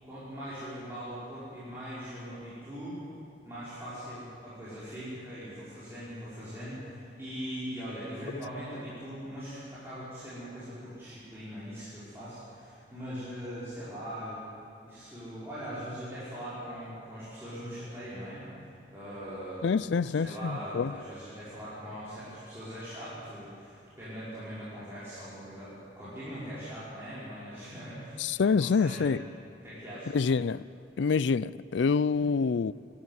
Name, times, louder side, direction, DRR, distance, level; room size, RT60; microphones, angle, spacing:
voice 1, 0.0-3.0 3.4-14.4 14.8-19.7 20.1-29.1 29.6-30.3 32.2-32.3, equal, 15° right, 5.6 m, -41 dB
voice 2, 19.6-20.9 28.2-29.2 30.1-30.7 31.0-32.7, left 5 dB, 75° left, 0.4 m, -26 dB
23.5 x 13.0 x 9.5 m
head